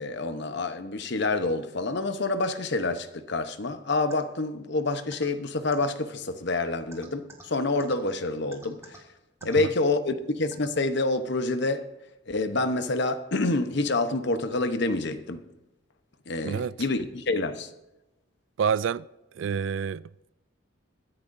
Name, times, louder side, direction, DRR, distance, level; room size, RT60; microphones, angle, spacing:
voice 1, 0.0-9.0 9.4-11.9 12.3-15.5 16.3-17.7, left 2 dB, 60° left, 1.0 m, -27 dB
sound 1, 4.1-4.2 5.1-5.3 5.7-5.9 6.9-7.4 7.8-7.9 8.5-9.0 9.4-9.6 10.5-10.7, right 2 dB, 15° right, 2.0 m, -46 dB
voice 2, 18.6-19.1 19.4-20.1, right 7 dB, 70° right, 0.3 m, -27 dB
22.5 x 10.5 x 2.7 m
head